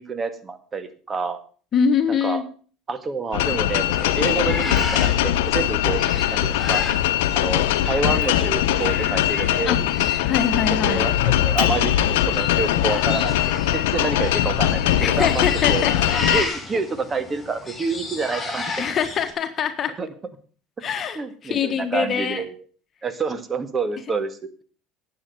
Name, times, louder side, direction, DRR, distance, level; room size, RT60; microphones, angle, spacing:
voice 1, 0.0-1.4 2.1-2.4 2.9-6.0 6.3-6.8 7.3-9.8 10.8-15.9 16.3-19.1 19.9-20.1 21.1-22.7 23.0-24.4, right 4 dB, 30° right, 11 dB, 1.9 m, -28 dB
voice 2, 1.7-2.4 9.7-9.8 10.2-11.1 15.0-15.9 18.8-19.9 20.8-22.4, left 7 dB, 40° left, 7 dB, 1.6 m, -23 dB
sound 1, 3.3-16.4, left 12 dB, 85° left, 0.9 m, -21 dB
sound 2, 3.7-19.3, left 3 dB, 20° left, 5.8 m, -34 dB
sound 3, 4.8-5.6 8.2-9.2 11.6-13.2, right 5 dB, 50° right, 3.1 m, -40 dB
11.5 x 8.7 x 6.9 m, 0.41 s
supercardioid pair, 95°, 0 cm